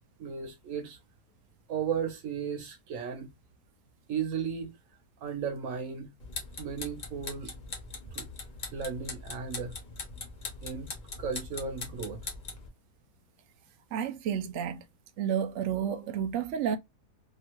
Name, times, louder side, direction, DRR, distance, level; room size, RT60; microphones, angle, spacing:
voice 1, 0.2-1.0 1.7-3.3 4.1-4.7 5.2-6.1 6.6-7.5 8.1-8.3 8.7-9.7 10.6-12.2, right 6 dB, 55° right, 1.1 m, -35 dB
sound 1, 6.2-12.7, left 3 dB, 55° left, 0.5 m, -41 dB
voice 2, 13.9-14.8 15.2-16.8, right 8 dB, 80° right, 0.6 m, -30 dB
2.9 x 2.3 x 2.9 m
omnidirectional pair, 1.9 m